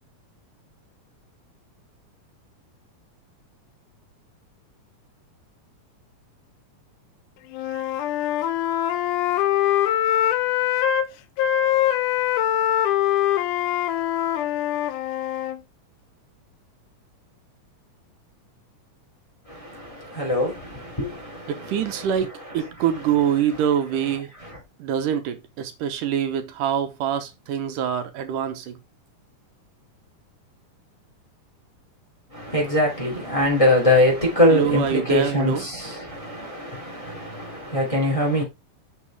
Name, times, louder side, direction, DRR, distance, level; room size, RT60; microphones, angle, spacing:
Wind instrument woodwind instrument, 7.5-11.1 11.4-15.6, left 11 dB, 85° left, 2.1 m, -23 dB
voice 1, 19.5-22.2 22.5-22.6 24.4-24.6 32.3-38.4, left 1 dB, 10° left, 2.8 m, -23 dB
voice 2, 21.5-24.3 24.8-28.8 34.5-35.6, right 9 dB, 85° right, 2.5 m, -25 dB
6.6 x 6.1 x 3.6 m
omnidirectional pair, 3.7 m